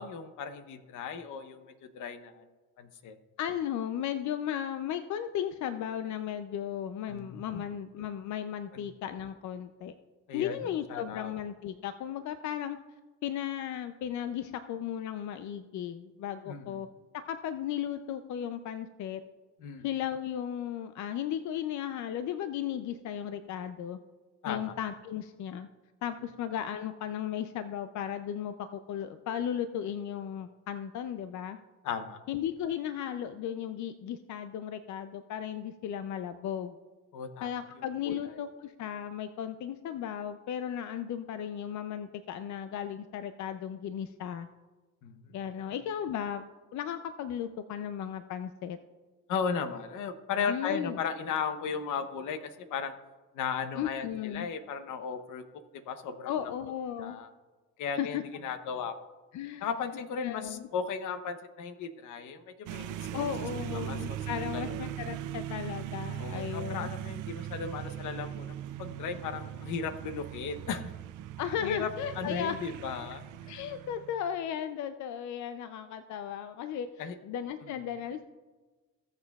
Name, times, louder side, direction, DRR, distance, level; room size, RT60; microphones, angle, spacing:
voice 1, 0.0-2.4 2.8-3.2 7.1-7.7 8.7-8.8 10.3-10.6 10.9-11.3 16.5-16.7 19.6-19.9 24.4-24.8 31.8-32.2 37.1-37.5 38.0-38.2 45.0-45.7 49.3-52.9 53.3-55.4 55.7-56.3 57.0-57.3 57.8-59.0 59.6-63.2 63.7-64.2 64.5-64.8 66.2-70.9 71.6-71.9 72.2-73.2 77.0-77.1 77.6-77.7, left 6 dB, 85° left, 9 dB, 0.9 m, -36 dB
voice 2, 3.4-9.9 10.3-12.8 13.2-16.9 17.3-19.2 19.8-24.0 24.5-25.7 26.0-31.6 32.3-36.8 37.4-44.5 45.3-48.8 50.5-51.0 53.8-54.5 56.3-57.2 58.0-58.2 59.3-59.7 60.2-60.7 63.1-66.9 71.4-72.6 73.5-78.3, left 9 dB, 70° left, 10 dB, 0.5 m, -35 dB
sound 1, 62.7-74.4, right 11 dB, 80° right, 0.5 m, -39 dB
19.5 x 6.6 x 2.3 m, 1.3 s
cardioid pair, 90°, 30 cm